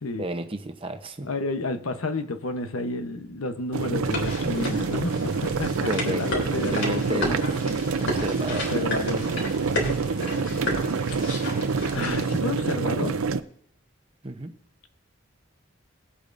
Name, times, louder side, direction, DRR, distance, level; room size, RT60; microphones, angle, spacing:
voice 1, 0.2-1.3 5.9-7.4 8.0-8.9 14.2-14.5, right 1 dB, 25° right, 0.8 m, -32 dB
voice 2, 1.2-7.4 8.5-9.3 11.9-13.2, left 2 dB, 90° left, 1.0 m, -31 dB
sound 1, 3.7-13.4, right 4 dB, 90° right, 0.6 m, -27 dB
sound 2, 4.0-12.4, left 1 dB, 65° left, 3.3 m, -33 dB
20.5 x 8.5 x 2.6 m
head